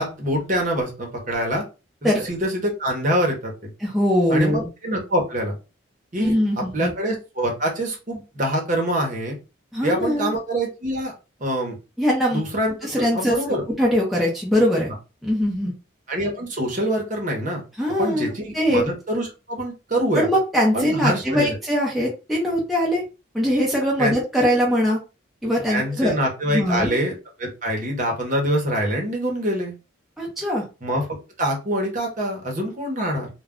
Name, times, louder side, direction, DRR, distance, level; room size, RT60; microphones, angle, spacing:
voice 1, 0.0-1.6 2.0-3.7 4.3-5.5 6.1-9.4 9.8-11.1 11.4-11.8 12.3-13.6 16.1-17.6 18.0-20.3 20.7-21.6 24.0-24.1 25.7-27.1 27.4-29.7 30.8-31.0 31.4-33.3, equal, 40° right, 0 dB, 0.9 m, -25 dB
voice 2, 3.8-4.7 6.2-6.9 9.7-10.3 12.0-12.4 12.8-14.9 15.2-15.7 17.8-18.9 20.1-23.0 23.3-25.0 25.4-26.2 26.5-27.0 30.2-30.6, equal, ahead, -4 dB, 0.6 m, -21 dB
2.2 x 2.2 x 3.6 m, 0.30 s
head